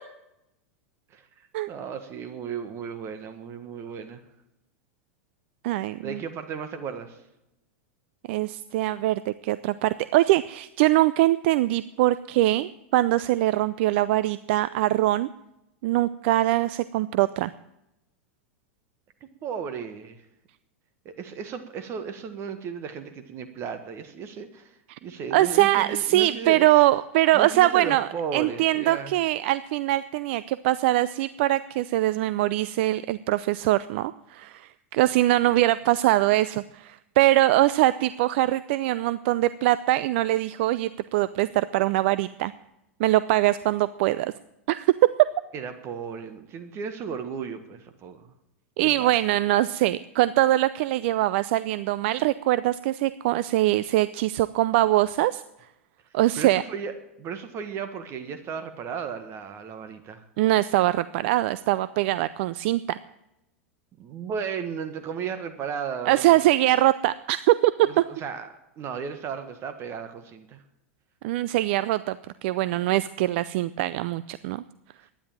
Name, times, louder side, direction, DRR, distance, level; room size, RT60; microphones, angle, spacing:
voice 1, 1.1-4.2 6.0-7.2 19.2-20.2 21.0-26.8 27.3-29.1 45.5-48.3 48.8-49.1 56.3-60.2 64.0-66.5 67.8-68.5 68.8-70.6, right 6 dB, 40° right, 9 dB, 1.6 m, -35 dB
voice 2, 5.6-6.2 8.3-15.3 15.8-17.5 24.9-25.0 25.3-42.5 43.0-44.3 44.7-44.9 48.8-55.4 56.1-56.6 60.4-63.0 66.1-67.7 68.0-68.1 71.2-72.2 72.4-74.6, right 15 dB, 60° right, 16 dB, 0.5 m, -23 dB
12.0 x 10.0 x 8.9 m, 0.87 s
hypercardioid pair, 100°, 7 cm